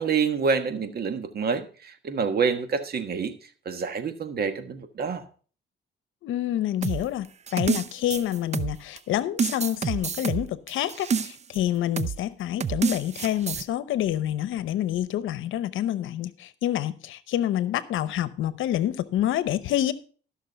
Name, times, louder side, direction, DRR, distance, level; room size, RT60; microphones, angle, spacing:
voice 1, 0.0-3.3 3.6-5.2, right 5 dB, 50° right, 1.5 m, -27 dB
voice 2, 6.2-7.3 7.5-19.9, left 12 dB, 80° left, 0.8 m, -27 dB
sound 1, 6.8-9.0 9.4-11.6 12.0-12.2 12.6-13.6, right 6 dB, 35° right, 0.6 m, -28 dB
13.5 x 6.4 x 5.2 m
cardioid pair, 90°, 20 cm